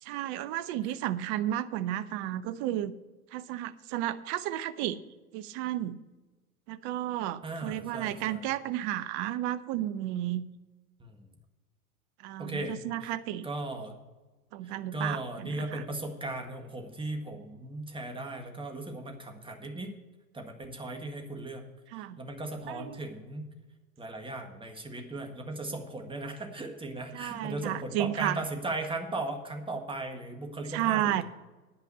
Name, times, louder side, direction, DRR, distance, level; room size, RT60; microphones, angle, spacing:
voice 1, 0.0-2.9 3.3-5.0 5.3-6.0 6.7-10.4 12.2-13.5 14.5-15.8 21.9-22.2 22.7-23.0 27.1-28.4 30.7-31.2, right 13 dB, 50° right, 15 dB, 0.8 m, -32 dB
voice 2, 7.4-8.4 11.0-11.2 12.4-13.1 13.4-14.0 14.6-19.9 20.3-21.6 21.9-23.5 24.0-31.2, right 2 dB, 10° right, 4 dB, 1.7 m, -37 dB
10.0 x 5.8 x 8.5 m, 1.2 s
hypercardioid pair, 100°, 42 cm